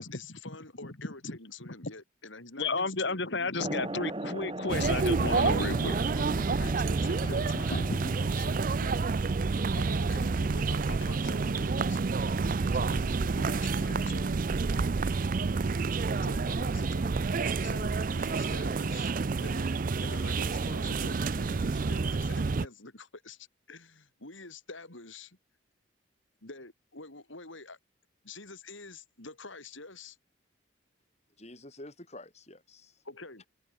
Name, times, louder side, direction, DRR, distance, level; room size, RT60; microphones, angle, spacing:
voice 1, 0.0-4.1 5.5-8.9 9.8-12.4 12.7-14.4 16.2-19.7 20.0-25.4 26.4-27.8 28.2-30.2 33.0-33.4, left 3 dB, 75° left, 5.4 m, -47 dB
voice 2, 2.6-5.9 6.2-6.3 7.7-8.1 12.4-12.8, left 3 dB, 60° left, 2.1 m, -33 dB
sound 1, 3.6-11.5, right 1 dB, 25° right, 1.4 m, -40 dB
sound 2, 4.7-22.7, right 4 dB, 45° right, 0.4 m, -29 dB
voice 3, 7.1-7.8 31.4-33.0, left 1 dB, 35° left, 4.7 m, -46 dB
head